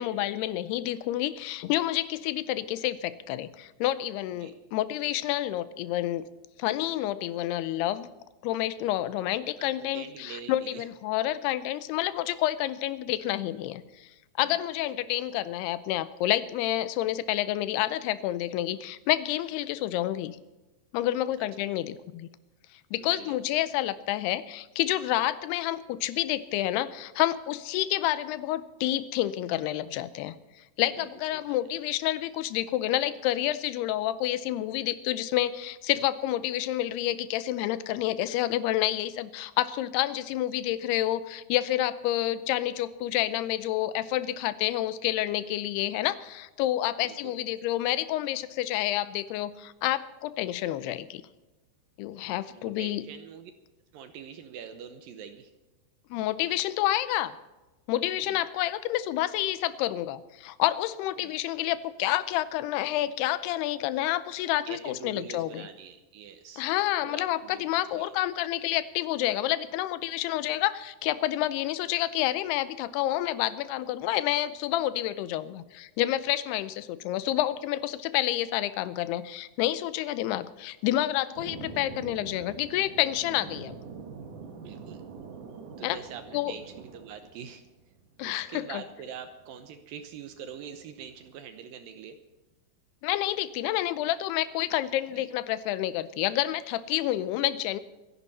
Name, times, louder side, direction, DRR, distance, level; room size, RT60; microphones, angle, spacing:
voice 1, 0.0-6.3 6.6-8.1 8.4-14.1 14.4-20.4 20.9-22.3 22.9-30.4 30.8-51.2 52.0-53.0 56.1-57.3 57.9-65.7 66.6-83.8 85.8-86.0 86.3-86.5 88.2-88.8 93.0-97.8, left 14 dB, 80° left, 14 dB, 2.5 m, -29 dB
voice 2, 9.6-10.9 14.4-14.6 23.0-23.4 30.9-31.6 47.0-47.3 52.5-53.5 53.9-55.5 58.2-58.4 61.2-61.3 64.7-66.7 67.0-68.1 84.6-85.0 85.8-87.6 88.2-92.2 95.1-95.3, right 8 dB, 75° right, 8 dB, 2.1 m, -44 dB
sound 1, 81.4-91.3, right 5 dB, 60° right, 2.5 m, -45 dB
26.0 x 11.0 x 4.2 m, 1.1 s
omnidirectional pair, 5.1 m